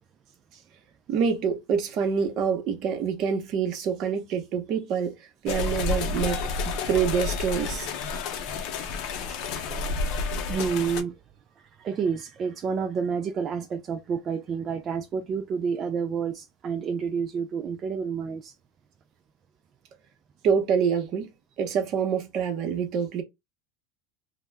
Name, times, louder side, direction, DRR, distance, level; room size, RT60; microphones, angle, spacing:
voice 1, 1.1-5.1 5.4-7.9 9.3-9.4 20.4-21.3 21.6-23.2, right 6 dB, 50° right, 0.8 m, -26 dB
sound 1, 5.5-11.0, left 4 dB, 60° left, 0.6 m, -30 dB
voice 2, 9.8-11.2 11.6-18.5, right 6 dB, 35° right, 0.3 m, -30 dB
2.3 x 2.1 x 3.2 m
supercardioid pair, 115°, 0 cm